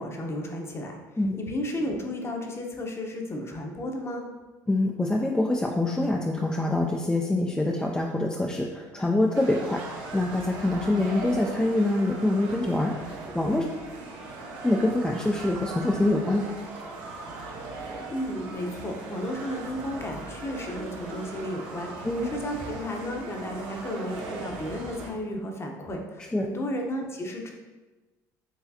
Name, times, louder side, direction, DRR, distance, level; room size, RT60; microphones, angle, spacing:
voice 1, 0.0-1.0 1.4-4.3 18.1-27.5, left 1 dB, 30° left, 2 dB, 0.8 m, -33 dB
voice 2, 4.7-12.9 13.3-13.7 14.6-16.5 22.0-22.3 26.3-26.5, left 2 dB, 10° left, 0 dB, 0.4 m, -25 dB
sound 1, 9.3-25.1, right 3 dB, 70° right, 0.8 m, -39 dB
4.8 x 3.1 x 2.7 m, 1.2 s
hypercardioid pair, 75°, 9 cm